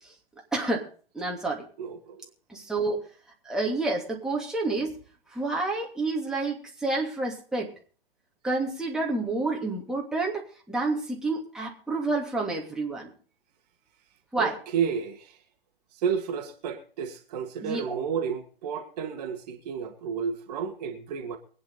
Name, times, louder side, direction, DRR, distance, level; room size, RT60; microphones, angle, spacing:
voice 1, 0.5-0.8 1.1-1.6 2.5-3.0 3.4-4.9 5.3-7.7 8.4-13.1 14.3-14.6 17.6-18.0, right 3 dB, ahead, 2.9 m, -29 dB
voice 2, 14.4-15.3 16.0-21.4, right 7 dB, 40° right, 2.3 m, -31 dB
23.5 x 9.5 x 4.1 m
figure-of-eight pair, 130°, 31 cm